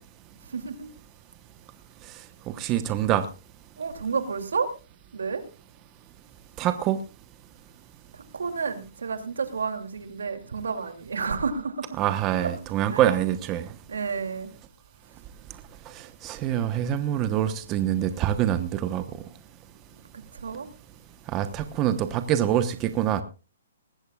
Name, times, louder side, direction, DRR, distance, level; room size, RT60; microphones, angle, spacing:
voice 1, 0.5-0.9 3.8-4.7 5.1-5.4 8.1-11.9 12.3-12.6 12.9-13.1 13.9-14.5 20.1-20.7, right 5 dB, 85° right, 2.7 m, -31 dB
voice 2, 2.5-3.2 6.6-7.0 12.0-13.6 16.2-19.0 21.3-23.2, right 11 dB, 25° right, 1.0 m, -25 dB
19.5 x 16.0 x 2.4 m
hypercardioid pair, 150°, 0 cm